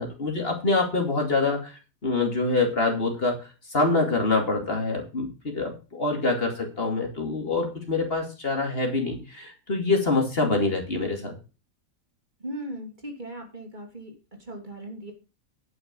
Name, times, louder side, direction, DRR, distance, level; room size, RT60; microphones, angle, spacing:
voice 1, 0.0-3.4 3.7-11.3, left 3 dB, 40° left, 2 dB, 2.8 m, -25 dB
voice 2, 12.4-14.1 14.4-15.1, right 1 dB, 30° right, 2 dB, 2.7 m, -38 dB
10.5 x 6.4 x 6.8 m, 0.32 s
omnidirectional pair, 1.5 m